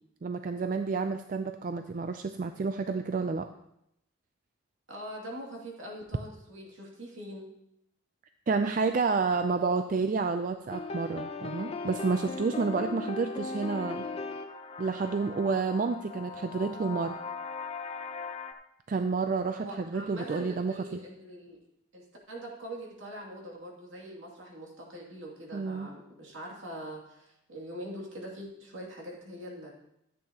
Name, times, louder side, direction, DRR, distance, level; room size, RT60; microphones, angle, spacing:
voice 1, 0.2-3.5 8.5-14.0 14.8-17.2 18.9-21.0 25.5-25.9, right 4 dB, 40° right, 8 dB, 0.3 m, -30 dB
voice 2, 4.9-7.5 19.5-21.6 21.9-29.7, right 1 dB, 70° right, -2 dB, 2.4 m, -43 dB
sound 1, 10.7-18.5, left 4 dB, 30° left, 0.5 m, -38 dB
13.5 x 8.4 x 2.9 m, 0.80 s
head